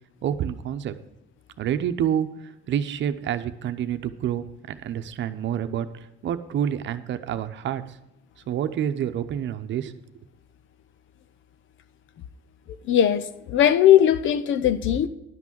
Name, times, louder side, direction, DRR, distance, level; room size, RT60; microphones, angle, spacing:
voice 1, 0.2-1.0 1.6-2.3 2.7-5.9 6.2-7.8 8.5-9.9, right 9 dB, 65° right, 0.8 m, -28 dB
voice 2, 12.9-15.1, left 10 dB, 75° left, 0.8 m, -19 dB
11.0 x 6.1 x 7.6 m
cardioid pair, 110°, 21 cm